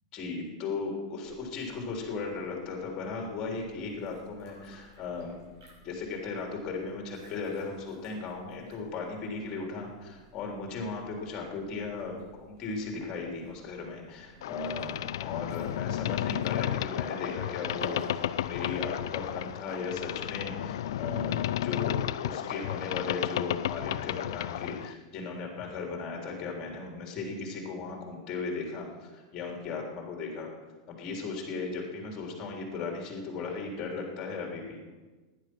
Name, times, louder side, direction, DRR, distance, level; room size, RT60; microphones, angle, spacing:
voice 1, 0.1-5.4 5.8-14.9 15.2-30.5 30.9-34.8, left 4 dB, 25° left, 1 dB, 3.3 m, -37 dB
sound 1, 1.2-19.8, right 1 dB, 75° right, 6.2 m, -54 dB
Boat Water vehicle, 14.4-24.9, left 12 dB, 75° left, 0.5 m, -33 dB
16.5 x 10.5 x 6.2 m, 1.3 s
supercardioid pair, 170°, 2 cm